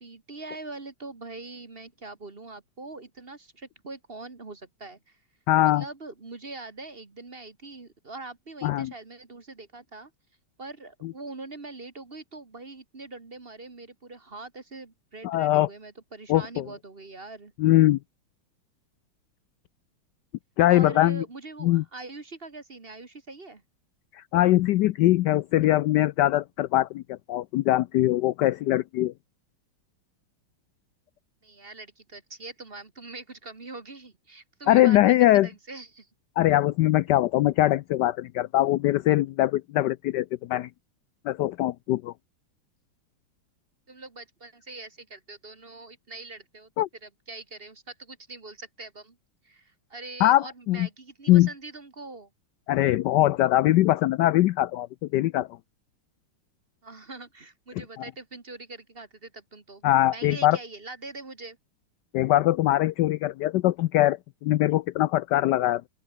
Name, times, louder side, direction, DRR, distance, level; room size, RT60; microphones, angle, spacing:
voice 1, 0.0-5.2 5.6-10.1 10.6-17.5 20.7-23.6 31.4-36.1 43.9-46.7 47.0-49.2 49.4-52.3 56.8-59.8 60.1-61.6, right 3 dB, 30° right, 1.8 m, -43 dB
voice 2, 5.5-5.8 8.6-8.9 11.0-11.1 15.2-15.7 16.3-16.7 17.6-18.0 20.6-21.2 21.6-21.8 24.1-29.1 34.7-35.5 36.4-40.7 41.3-42.1 46.8-46.9 50.2-50.9 51.3-51.5 52.7-54.9 55.1-55.5 59.8-60.6 62.1-65.8, left 15 dB, 75° left, 1.0 m, -22 dB
open air
omnidirectional pair, 2.3 m